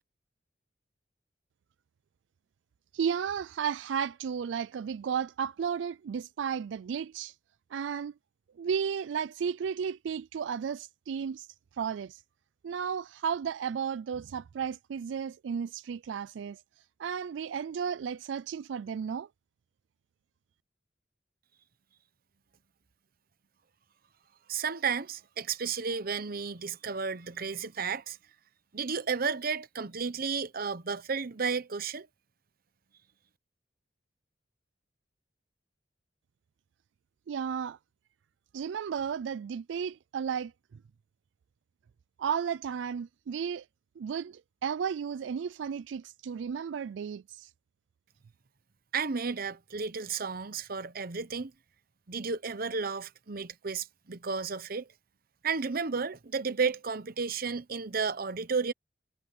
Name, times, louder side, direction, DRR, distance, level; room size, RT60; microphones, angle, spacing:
voice 1, 2.9-7.3 7.7-8.1 8.6-11.5 11.7-12.2 12.6-16.6 17.0-19.3 37.3-37.8 38.5-40.5 42.2-43.7 44.0-47.5, right 7 dB, 85° right, 0.3 m, -33 dB
voice 2, 24.5-28.2 28.7-32.1 48.9-51.5 52.1-54.9 55.4-58.7, right 5 dB, 55° right, 0.9 m, -32 dB
head